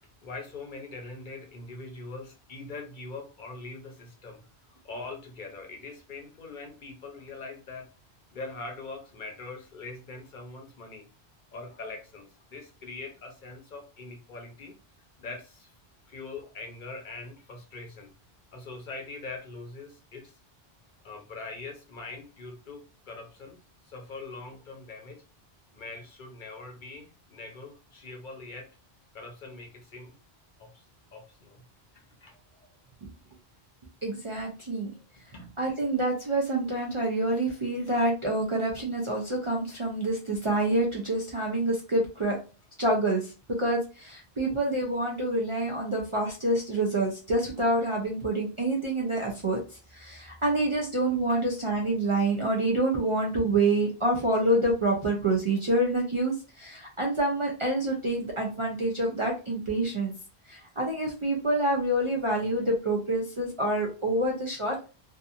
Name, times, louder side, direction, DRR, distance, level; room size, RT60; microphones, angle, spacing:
voice 1, 0.2-4.4 4.8-7.9 8.3-11.1 11.5-14.7 15.2-15.7 16.1-18.1 18.5-20.3 21.0-23.6 23.8-25.2 25.7-28.7 29.1-30.2 30.6-30.8 31.1-31.6 31.9-32.3 35.2-35.5 51.3-51.4, left 3 dB, 55° left, 2 dB, 0.7 m, -42 dB
voice 2, 34.0-34.9 35.6-42.4 42.8-43.3 43.6-60.1 60.5-64.9, right 1 dB, 45° right, -1 dB, 0.4 m, -27 dB
2.7 x 2.4 x 2.4 m, 0.33 s
omnidirectional pair, 1.0 m